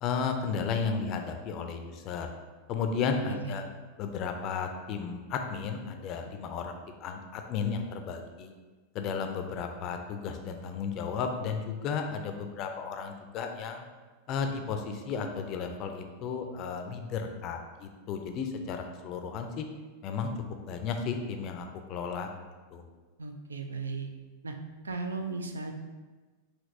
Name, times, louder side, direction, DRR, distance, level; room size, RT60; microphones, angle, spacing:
voice 1, 0.0-2.3 2.7-3.6 4.0-8.5 8.9-13.9 14.3-19.6 20.0-20.3 20.7-22.3 22.7-22.8, left 5 dB, 40° left, 5 dB, 0.4 m, -34 dB
voice 2, 3.3-3.6 23.2-24.1 24.4-24.5 24.8-25.7, right 4 dB, 75° right, 5 dB, 0.4 m, -36 dB
5.0 x 2.9 x 2.7 m, 1.3 s
figure-of-eight pair, 90°, 0 cm